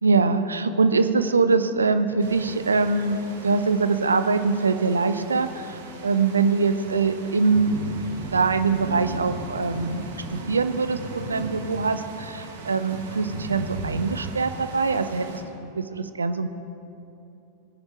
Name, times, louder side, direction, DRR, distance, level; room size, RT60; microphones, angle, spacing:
voice 1, 0.0-7.8 8.3-10.0 10.3-16.5, right 4 dB, 75° right, 10 dB, 0.6 m, -23 dB
sound 1, 2.2-15.4, right 2 dB, 60° right, 1.8 m, -37 dB
19.5 x 9.8 x 4.5 m, 2.9 s
figure-of-eight pair, 90°, 0 cm